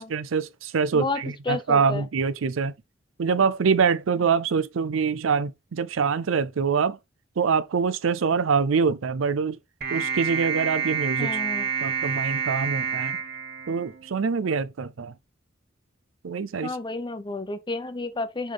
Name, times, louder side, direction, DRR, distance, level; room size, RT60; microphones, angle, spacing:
voice 1, 0.1-2.7 3.2-7.0 7.4-9.6 9.9-11.4 11.8-13.2 13.7-15.1 16.2-16.7, right 5 dB, 85° right, 0.5 m, -24 dB
voice 2, 0.9-2.1 11.2-11.7 16.6-18.5, left 3 dB, 25° left, 0.7 m, -31 dB
sound 1, 9.8-14.3, right 6 dB, 55° right, 1.3 m, -28 dB
5.7 x 5.2 x 3.4 m
head